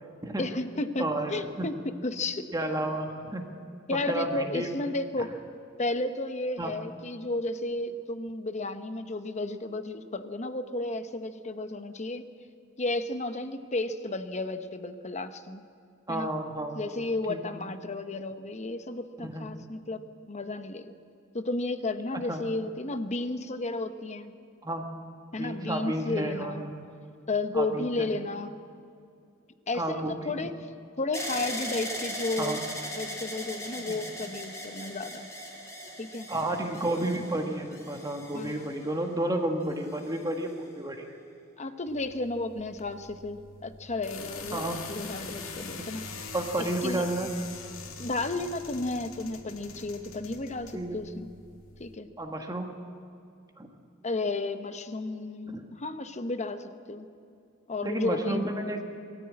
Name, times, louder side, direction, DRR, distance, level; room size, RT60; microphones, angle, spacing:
voice 1, 0.4-1.0 1.3-1.7 2.0-2.4 3.9-5.3 5.8-12.2 12.8-15.6 16.1-16.3 16.7-20.9 21.3-24.4 25.3-26.7 27.3-28.6 29.7-30.5 31.0-32.6 32.9-35.3 36.0-36.3 38.3-38.6 41.6-46.1 46.6-47.1 48.0-51.3 51.8-52.1 54.0-57.1 57.7-58.4, left 2 dB, 35° left, 10 dB, 0.9 m, -33 dB
voice 2, 1.0-1.7 2.5-3.5 3.9-4.7 6.6-6.7 16.1-16.8 17.3-17.4 19.2-19.5 22.3-22.4 24.6-24.8 25.4-26.8 27.5-28.1 29.7-30.4 32.4-32.6 33.9-34.0 36.3-41.2 44.5-44.8 45.6-45.9 46.3-47.3 50.7-51.0 52.2-52.7 53.6-53.7 55.5-55.6 57.8-58.8, right 1 dB, 20° right, 3 dB, 1.7 m, -31 dB
sound 1, 31.1-39.1 39.9-40.5, equal, 15° left, 4.1 m, -39 dB
sound 2, 41.9-52.0, left 4 dB, 90° left, 2.1 m, -43 dB
22.0 x 13.5 x 8.7 m, 2.5 s
head